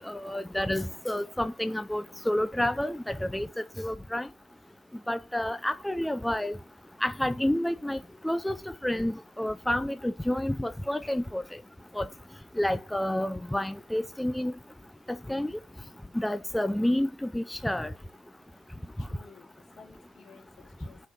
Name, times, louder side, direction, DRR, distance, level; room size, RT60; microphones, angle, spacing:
voice 1, 0.0-3.5 3.8-4.3 5.1-6.6 7.0-8.0 8.2-8.6 8.8-11.4 12.0-12.1 12.6-14.5 15.3-15.5 16.1-17.9, left 1 dB, 5° left, 0.5 m, -29 dB
voice 2, 18.5-21.1, left 6 dB, 75° left, 3.3 m, -56 dB
10.0 x 4.9 x 5.8 m
cardioid pair, 125°, 0 cm